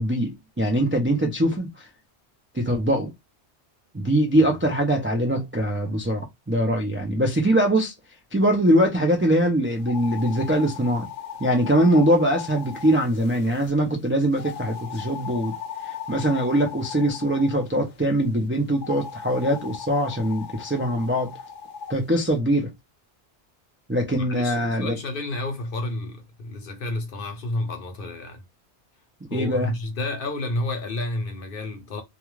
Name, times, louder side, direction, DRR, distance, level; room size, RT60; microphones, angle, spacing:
voice 1, 0.0-1.9 2.5-3.1 3.9-7.9 8.3-11.1 11.4-15.5 15.8-21.3 21.9-22.7 23.9-25.0 29.3-29.7, right 1 dB, 20° right, 0.3 m, -22 dB
sound 1, 9.8-13.7 14.4-17.7 18.7-22.0, left 7 dB, 90° left, 0.9 m, -38 dB
voice 2, 24.2-28.4 29.3-32.0, left 2 dB, 55° left, 0.8 m, -30 dB
2.4 x 2.3 x 3.1 m
omnidirectional pair, 1.2 m